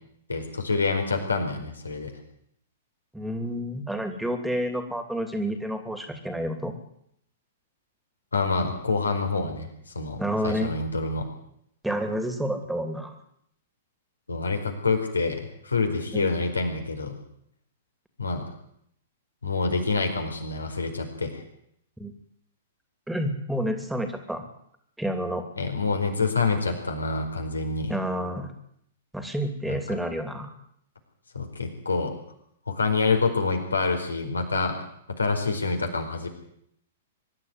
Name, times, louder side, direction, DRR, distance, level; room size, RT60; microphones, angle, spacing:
voice 1, 0.3-2.1 8.3-9.7 9.9-11.3 14.3-15.4 15.6-17.1 18.2-18.4 19.4-21.4 25.6-27.9 29.7-29.8 31.3-32.1 32.7-34.7 35.2-36.3, left 4 dB, 80° left, 4 dB, 4.7 m, -26 dB
voice 2, 3.1-6.7 10.2-10.7 11.8-13.1 16.1-16.3 22.0-22.1 23.1-24.4 25.0-25.4 27.9-28.5 29.1-30.5, equal, 5° right, 7 dB, 2.8 m, -29 dB
23.5 x 12.0 x 9.6 m, 0.71 s
figure-of-eight pair, 110°, 0 cm